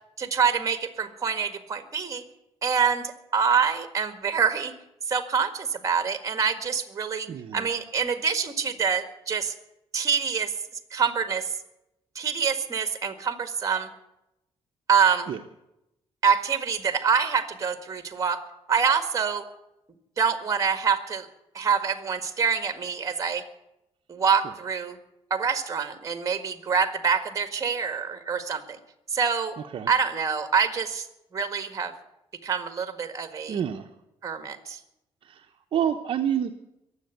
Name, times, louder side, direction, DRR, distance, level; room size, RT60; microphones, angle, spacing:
voice 1, 0.2-2.2 2.6-4.7 5.1-9.5 9.9-10.5 10.9-11.5 12.2-13.9 14.9-15.3 16.2-18.4 18.7-19.4 20.2-21.3 21.5-23.4 24.1-25.0 25.3-28.8 29.1-29.6 29.9-31.1 31.3-31.9 32.4-33.6 34.2-34.8, right 6 dB, 30° right, 9 dB, 1.7 m, -26 dB
voice 2, 7.3-7.7 15.3-15.4 29.7-29.9 33.5-33.9 35.2-36.5, right 9 dB, 55° right, 4 dB, 0.9 m, -28 dB
21.5 x 8.1 x 8.0 m, 0.88 s
cardioid pair, 145°, 11 cm